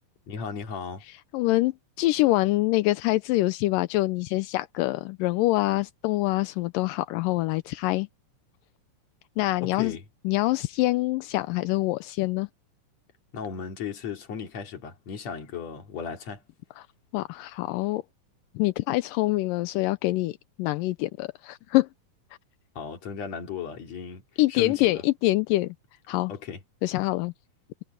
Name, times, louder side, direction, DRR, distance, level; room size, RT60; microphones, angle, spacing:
voice 1, 0.3-1.0 9.6-10.0 13.3-16.4 22.8-24.2 24.5-25.0 26.3-26.6, left 6 dB, 50° left, 3.6 m, -36 dB
voice 2, 1.1-1.7 2.0-8.1 9.4-10.0 10.2-12.5 16.8-16.9 17.1-18.0 18.6-21.9 24.4-25.7 26.1-26.3 26.8-27.3, left 18 dB, 80° left, 2.1 m, -25 dB
omnidirectional pair, 4.2 m